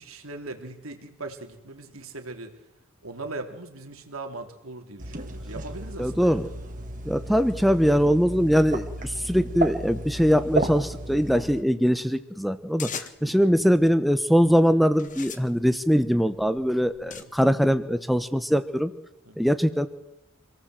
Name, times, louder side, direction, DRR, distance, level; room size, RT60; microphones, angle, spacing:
voice 1, 0.0-2.5 3.0-6.5 13.2-13.6 17.0-17.3 19.2-19.5, right 2 dB, 75° right, 5 dB, 3.2 m, -40 dB
sound 1, 5.0-11.6, right 1 dB, 40° right, 2.3 m, -33 dB
voice 2, 6.0-6.4 7.0-12.9 13.2-18.9 19.4-19.9, equal, ahead, 10 dB, 1.2 m, -22 dB
sound 2, 12.8-13.4 14.2-14.5 14.9-17.2, left 7 dB, 40° left, 1.6 m, -40 dB
26.5 x 18.0 x 7.8 m, 0.86 s
head